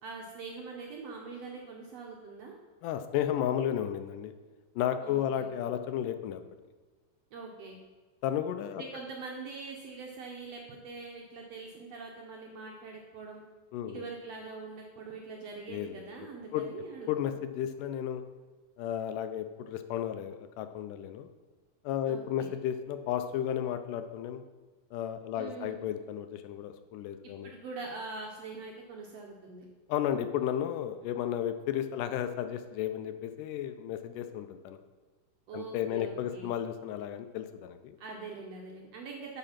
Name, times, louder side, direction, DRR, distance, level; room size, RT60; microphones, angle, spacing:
voice 1, 0.0-2.5 5.0-5.5 7.3-7.8 8.7-13.4 13.9-17.1 22.1-22.5 25.3-25.9 27.2-29.6 35.5-36.5 38.0-39.4, right 4 dB, 70° right, 0 dB, 1.6 m, -43 dB
voice 2, 2.8-4.3 4.8-6.4 8.2-8.8 13.7-14.1 15.7-16.0 16.5-16.7 17.1-18.2 18.8-21.3 21.8-24.4 24.9-27.5 29.9-34.8 35.5-38.0, left 10 dB, 80° left, 9 dB, 2.1 m, -33 dB
8.9 x 5.0 x 5.8 m, 1.4 s
omnidirectional pair, 3.8 m